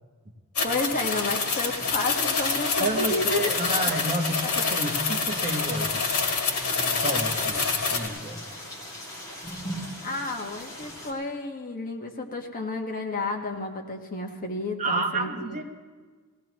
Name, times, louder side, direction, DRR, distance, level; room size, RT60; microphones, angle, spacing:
sound 1, 0.5-8.1, left 4 dB, 70° left, 1.9 m, -27 dB
voice 1, 0.6-3.4 10.0-15.6, left 2 dB, 40° left, 2 dB, 1.4 m, -31 dB
sound 2, 1.1-11.1, left 1 dB, 15° left, 2.5 m, -39 dB
voice 2, 2.8-6.0 6.8-8.4 14.8-15.6, right 1 dB, 35° right, 3 dB, 1.2 m, -30 dB
20.0 x 16.5 x 3.1 m, 1.5 s
head